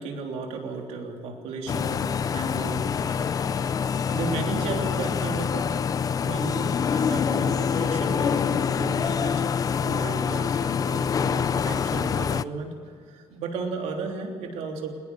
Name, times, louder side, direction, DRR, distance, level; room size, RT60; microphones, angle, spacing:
voice 1, 0.0-3.4 4.1-5.7 6.1-15.0, right 4 dB, 85° right, 2 dB, 3.3 m, -34 dB
sound 1, 1.7-12.4, left 7 dB, 35° left, 0.5 m, -26 dB
20.5 x 19.0 x 7.0 m, 2.4 s
cardioid pair, 135°, 11 cm